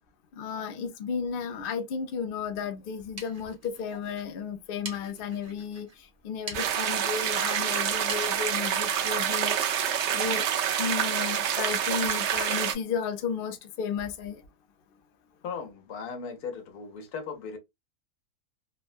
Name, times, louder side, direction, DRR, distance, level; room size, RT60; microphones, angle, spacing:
voice 1, 0.3-5.9 6.2-9.6 10.1-10.5 10.8-14.4, left 6 dB, 55° left, 0.6 m, -33 dB
sound 1, 2.8-10.4, right 2 dB, 30° right, 0.9 m, -47 dB
sound 2, 6.5-12.7, right 9 dB, 65° right, 0.7 m, -27 dB
voice 2, 15.4-17.6, left 5 dB, 80° left, 1.4 m, -37 dB
3.5 x 2.1 x 2.4 m
omnidirectional pair, 1.6 m